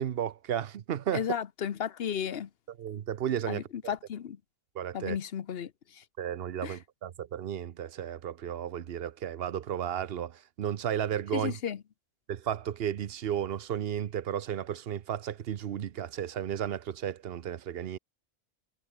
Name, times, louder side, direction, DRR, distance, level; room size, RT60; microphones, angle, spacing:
voice 1, 0.0-1.3 2.8-3.9 4.7-5.2 6.2-11.6 12.3-18.0, right 9 dB, 60° right, 0.9 m, -33 dB
voice 2, 1.1-2.5 3.5-4.4 4.9-5.7 6.0-6.1 6.6-6.8 11.3-11.8, left 8 dB, 60° left, 1.0 m, -34 dB
omnidirectional pair, 1.2 m